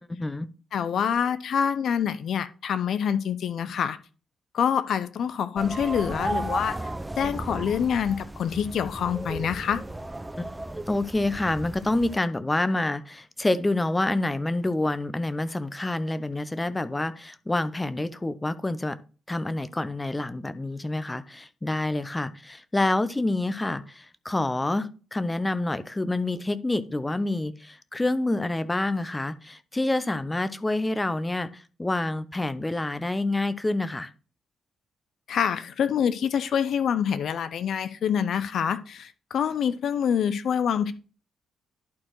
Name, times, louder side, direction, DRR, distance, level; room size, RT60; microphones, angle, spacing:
voice 1, 0.1-0.5 10.4-10.5 10.9-19.0 19.3-34.1, left 2 dB, 20° left, 0.7 m, -27 dB
voice 2, 0.7-4.0 4.5-6.8 7.2-9.8 35.3-40.9, left 8 dB, 60° left, 0.6 m, -26 dB
sound 1, 5.6-12.2, right 1 dB, 15° right, 0.5 m, -35 dB
11.0 x 4.5 x 3.1 m
hypercardioid pair, 40°, 0 cm